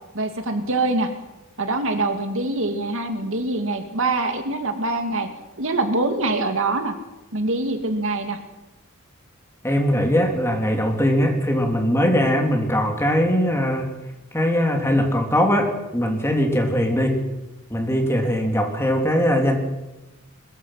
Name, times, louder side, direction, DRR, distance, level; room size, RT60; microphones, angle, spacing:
voice 1, 0.1-1.1 1.6-5.3 5.6-6.9 7.3-8.4, right 2 dB, 60° right, 6 dB, 2.3 m, -24 dB
voice 2, 9.6-13.9 14.3-17.2 17.7-19.6, equal, 10° left, 2 dB, 3.2 m, -21 dB
22.5 x 21.5 x 5.9 m, 1.0 s
head